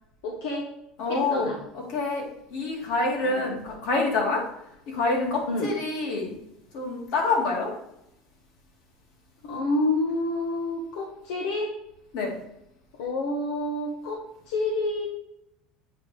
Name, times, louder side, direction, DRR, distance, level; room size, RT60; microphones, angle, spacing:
voice 1, 0.2-0.7 1.1-1.6 3.2-3.5 5.5-5.7 9.4-11.7 12.9-15.1, left 2 dB, 80° left, 0 dB, 1.2 m, -29 dB
voice 2, 1.0-1.5 1.9-2.2 2.5-4.4 4.9-6.3 6.7-7.7 12.1-12.3, left 3 dB, 55° left, 0 dB, 2.1 m, -26 dB
8.2 x 5.4 x 3.3 m, 0.81 s
cardioid pair, 165°, 0 cm